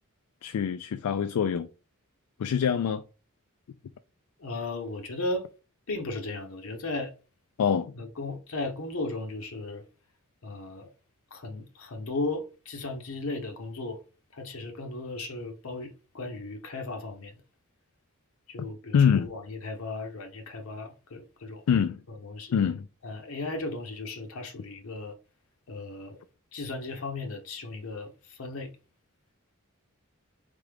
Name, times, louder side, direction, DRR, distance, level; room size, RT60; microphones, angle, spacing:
voice 1, 0.4-1.7 2.4-3.0 7.6-7.9 18.9-19.3 21.7-22.0 22.5-22.9, left 7 dB, 90° left, 0.3 m, -24 dB
voice 2, 4.4-5.5 5.9-7.1 8.0-9.8 10.4-10.9 11.3-14.0 14.3-17.4 18.5-21.7 22.1-22.5 23.0-25.1 25.7-26.2 26.5-28.7, left 2 dB, 65° left, 0.7 m, -36 dB
3.7 x 3.5 x 3.4 m
head